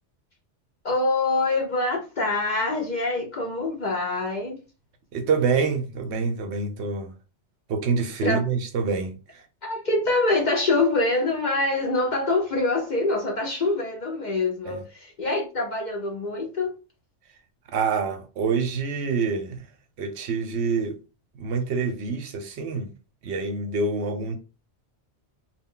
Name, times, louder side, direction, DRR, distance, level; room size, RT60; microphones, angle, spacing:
voice 1, 0.8-4.6 8.2-8.4 9.6-16.7, left 2 dB, 50° left, 0.6 m, -25 dB
voice 2, 5.1-7.1 7.7-9.4 14.7-14.8 17.7-19.6 20.0-21.0 21.3-22.9 23.2-24.4, right 5 dB, 70° right, 0.8 m, -26 dB
2.2 x 2.2 x 3.6 m
omnidirectional pair, 1.2 m